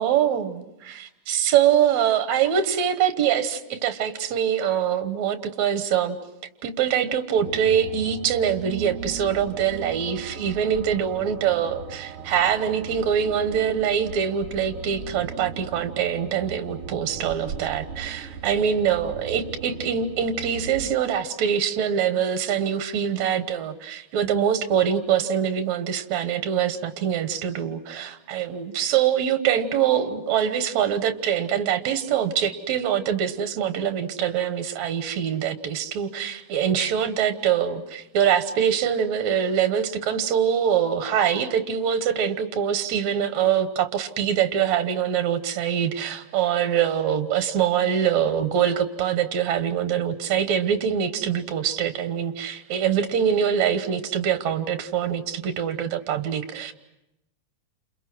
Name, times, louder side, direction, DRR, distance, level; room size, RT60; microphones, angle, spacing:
voice 1, 0.0-6.2 6.6-56.7, right 8 dB, 70° right, 10 dB, 2.5 m, -24 dB
sound 1, 7.4-20.9, right 6 dB, 50° right, 3.4 m, -38 dB
29.5 x 28.0 x 6.2 m, 0.89 s
omnidirectional pair, 3.3 m